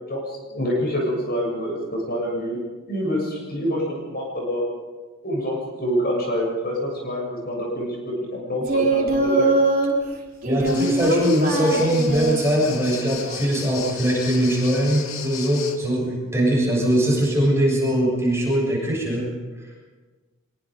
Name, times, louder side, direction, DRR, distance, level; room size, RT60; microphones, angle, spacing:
voice 1, 0.1-2.6 2.9-4.7 5.2-9.5, equal, 45° left, -1 dB, 7.4 m, -26 dB
Singing, 8.6-9.9 10.4-12.4 13.2-13.8, right 2 dB, 45° right, 3.8 m, -22 dB
voice 2, 10.4-19.3 19.6-19.7, right 1 dB, 15° right, -4 dB, 7.6 m, -21 dB
sound 1, 10.7-15.8, left 7 dB, 80° left, 2.3 m, -36 dB
25.0 x 22.5 x 5.2 m, 1.3 s
head